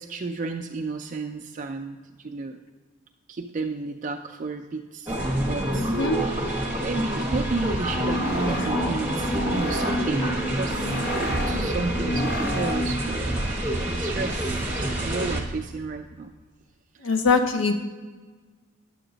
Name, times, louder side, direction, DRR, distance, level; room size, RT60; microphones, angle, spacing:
voice 1, 0.0-2.6 3.3-5.9 6.8-10.3 10.5-13.4 13.8-16.3 17.1-17.2, right 3 dB, 35° right, 4 dB, 0.3 m, -32 dB
sound 1, 5.1-15.4, right 1 dB, 10° right, 1.1 m, -27 dB
voice 2, 5.7-6.2 17.0-17.7, left 4 dB, 70° left, 6 dB, 0.6 m, -22 dB
sound 2, 7.8-13.1, equal, 45° left, 0.9 m, -30 dB
10.0 x 7.7 x 3.9 m, 1.4 s
head